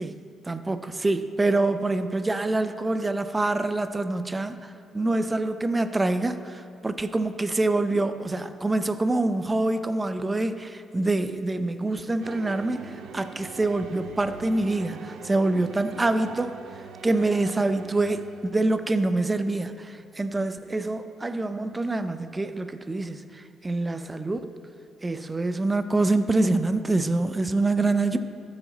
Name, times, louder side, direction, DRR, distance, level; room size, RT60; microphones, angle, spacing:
voice 1, 0.5-16.5 17.0-24.5 25.0-28.2, right 2 dB, 20° right, 10 dB, 0.5 m, -26 dB
sound 1, 12.2-18.8, right 5 dB, 75° right, 0.6 m, -42 dB
14.0 x 4.9 x 4.0 m, 2.3 s
cardioid pair, 90°, 0 cm